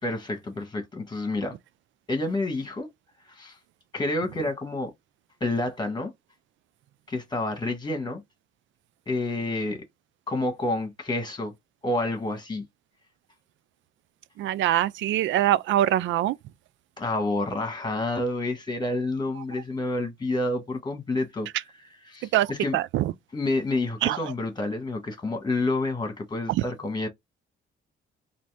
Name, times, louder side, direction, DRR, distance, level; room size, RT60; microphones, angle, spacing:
voice 1, 0.0-1.5 2.1-2.9 3.3-3.6 3.9-4.9 5.4-6.1 7.1-8.2 9.1-9.8 10.3-11.5 11.8-12.6 17.0-21.5 22.0-22.8 23.3-27.1, left 2 dB, 20° left, 1.7 m, -29 dB
voice 2, 14.4-16.4 22.3-22.5 22.7-23.1 24.0-24.2, right 13 dB, 75° right, 0.4 m, -23 dB
4.1 x 2.8 x 3.5 m
cardioid pair, 90°, 20 cm